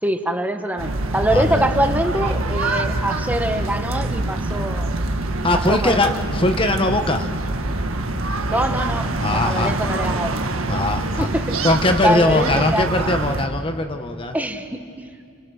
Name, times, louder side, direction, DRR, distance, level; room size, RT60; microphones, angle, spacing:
voice 1, 0.0-4.9 5.7-6.0 8.5-10.3 11.2-11.6 12.0-13.1 14.3-14.8, right 1 dB, 10° right, 6 dB, 1.2 m, -24 dB
sound 1, 0.8-13.5, right 2 dB, 85° right, 1.7 m, -25 dB
voice 2, 1.3-1.6 5.4-7.3 9.2-9.7 10.7-11.3 11.6-14.3, left 2 dB, 25° left, 6 dB, 1.1 m, -20 dB
28.5 x 28.5 x 6.4 m, 2.3 s
head